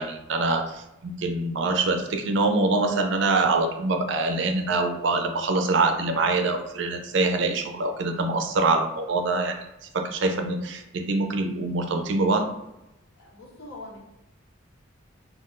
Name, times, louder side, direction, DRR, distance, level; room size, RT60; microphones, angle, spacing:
voice 1, 0.0-9.6 9.9-12.5, right 3 dB, 60° right, 6 dB, 0.4 m, -24 dB
voice 2, 4.5-4.9 13.2-14.0, left 2 dB, 90° left, -4 dB, 1.0 m, -44 dB
2.4 x 2.3 x 3.6 m, 0.91 s
head